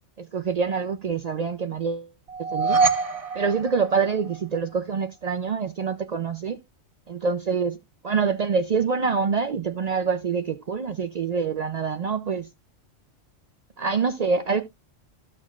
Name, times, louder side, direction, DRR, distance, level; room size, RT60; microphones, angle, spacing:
voice 1, 0.2-2.1 2.5-2.8 3.3-6.6 7.1-7.8 8.0-12.5 13.8-14.6, right 5 dB, 75° right, 0.3 m, -26 dB
sound 1, 2.3-4.6, right 4 dB, 35° right, 0.6 m, -25 dB
13.0 x 6.4 x 2.3 m
omnidirectional pair, 1.3 m